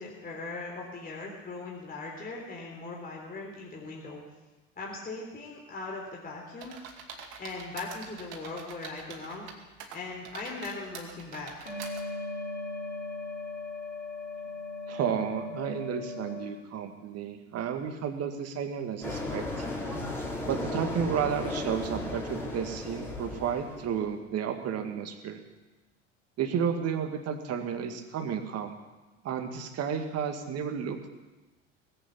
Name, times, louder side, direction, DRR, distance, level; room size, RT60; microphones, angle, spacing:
voice 1, 0.0-4.2 4.8-6.7 7.4-9.5 9.9-11.7, left 3 dB, 25° left, -1 dB, 3.6 m, -39 dB
sound 1, 6.6-9.5 9.8-12.0, right 6 dB, 60° right, 2.5 m, -45 dB
sound 2, 11.7-16.5, left 3 dB, 80° left, 4.4 m, -38 dB
voice 2, 14.9-19.7 20.5-25.4 26.4-28.8 29.2-31.1, right 7 dB, 40° right, 6 dB, 2.0 m, -32 dB
sound 3, 19.0-24.1, left 2 dB, 5° left, 4.3 m, -35 dB
19.5 x 8.4 x 8.4 m, 1.2 s
figure-of-eight pair, 75°, 38 cm